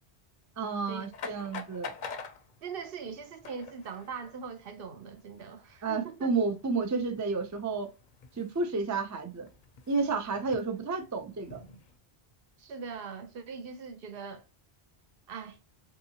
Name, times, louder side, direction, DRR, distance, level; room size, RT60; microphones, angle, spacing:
voice 1, 0.6-1.9 5.8-7.9 8.4-9.5 9.9-11.6, right 4 dB, 30° right, 0.3 m, -31 dB
sound 1, 0.8-12.0, left 5 dB, 55° left, 0.6 m, -48 dB
voice 2, 2.6-6.3 12.6-14.4 15.3-15.6, right 5 dB, 65° right, 0.8 m, -41 dB
3.6 x 2.7 x 2.7 m
omnidirectional pair, 1.1 m